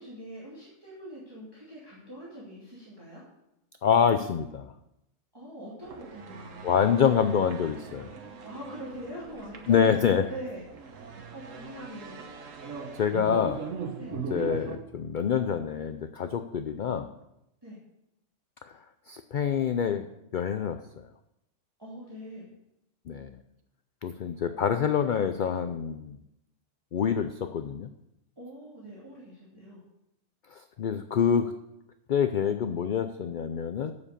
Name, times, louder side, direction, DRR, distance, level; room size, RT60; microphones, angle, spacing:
voice 1, 0.0-3.2 5.3-6.8 8.4-9.8 10.3-10.6 11.3-12.2 14.0-14.2 17.6-17.8 21.8-22.5 28.4-29.8, equal, 20° right, -8 dB, 2.7 m, -43 dB
voice 2, 3.8-4.7 6.6-8.1 9.7-10.2 12.9-13.6 14.1-17.1 19.1-20.1 20.3-20.8 23.1-23.4 24.0-26.2 26.9-27.9 30.5-31.5 32.1-33.9, left 7 dB, 55° left, 9 dB, 0.5 m, -26 dB
sound 1, 5.8-14.8, right 5 dB, 85° right, 1.5 m, -40 dB
8.4 x 7.4 x 6.7 m, 0.85 s
omnidirectional pair, 1.3 m